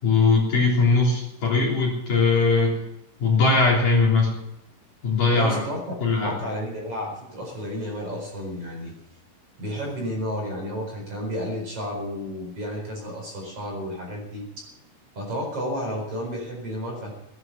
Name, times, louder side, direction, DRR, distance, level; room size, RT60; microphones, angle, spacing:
voice 1, 0.0-2.8 3.2-4.3 5.0-5.6 6.0-6.4, left 3 dB, 45° left, -3 dB, 4.8 m, -20 dB
voice 2, 5.3-8.9 9.6-14.6 15.1-17.1, equal, 30° right, 0 dB, 5.2 m, -32 dB
18.5 x 11.5 x 6.9 m, 0.84 s
omnidirectional pair, 5.4 m